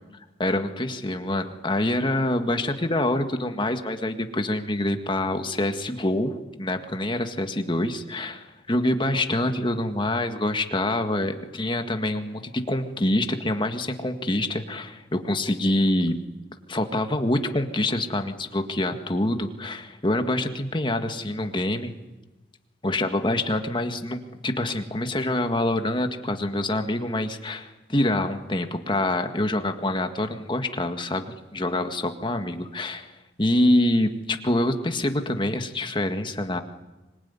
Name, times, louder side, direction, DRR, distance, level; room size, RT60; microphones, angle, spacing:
voice 1, 0.4-16.2 16.7-21.9 22.8-31.2 31.5-33.1 33.4-36.6, left 1 dB, 25° left, 6 dB, 1.8 m, -26 dB
25.5 x 20.5 x 9.7 m, 1.1 s
head